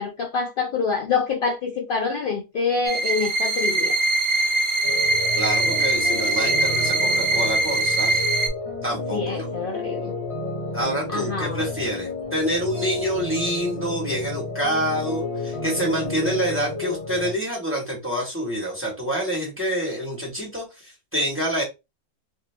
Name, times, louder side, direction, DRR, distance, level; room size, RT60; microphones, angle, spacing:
voice 1, 0.0-4.0 4.3-4.5 9.1-10.1 11.1-11.7, left 5 dB, 70° left, 0.5 m, -26 dB
sound 1, 2.9-8.5, right 2 dB, 60° right, 0.5 m, -22 dB
sound 2, 4.8-17.3, left 3 dB, 30° left, 0.8 m, -31 dB
voice 2, 5.3-8.2 8.8-9.5 10.7-21.6, equal, 10° right, 1.2 m, -27 dB
2.7 x 2.4 x 3.3 m
omnidirectional pair, 1.5 m